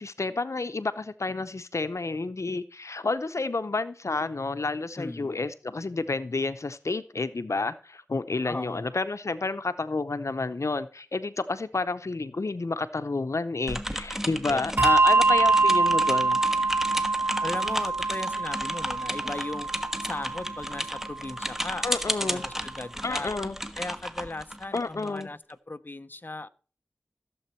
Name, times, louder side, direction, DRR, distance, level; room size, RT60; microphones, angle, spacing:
voice 1, 0.0-16.4 21.8-22.4 23.0-23.6 24.7-25.3, left 3 dB, 85° left, 13 dB, 0.7 m, -30 dB
voice 2, 5.0-5.4 8.4-8.9 14.5-14.6 17.4-19.7 20.0-21.9 22.2-23.3 23.8-26.5, left 2 dB, 40° left, 12 dB, 0.7 m, -37 dB
sound 1, 13.7-25.2, equal, 5° right, 1.3 m, -33 dB
Bell, 14.8-21.6, right 3 dB, 45° right, 0.6 m, -25 dB
15.0 x 7.8 x 4.5 m, 0.39 s
wide cardioid pair, 40°, 5 cm